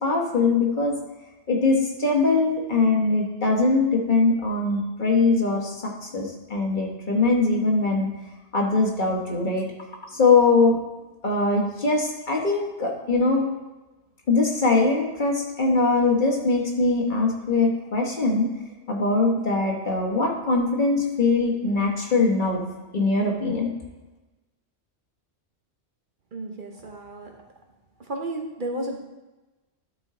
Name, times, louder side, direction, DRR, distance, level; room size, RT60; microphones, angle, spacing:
voice 1, 0.0-0.9 1.5-8.1 8.5-9.7 10.1-10.8 11.2-13.4 14.3-18.5 18.9-22.6 22.9-23.7, left 3 dB, 45° left, 0 dB, 1.3 m, -22 dB
voice 2, 26.3-27.3 28.0-29.0, right 1 dB, 50° right, 2 dB, 1.0 m, -33 dB
12.0 x 4.4 x 3.7 m, 1.1 s
omnidirectional pair, 1.2 m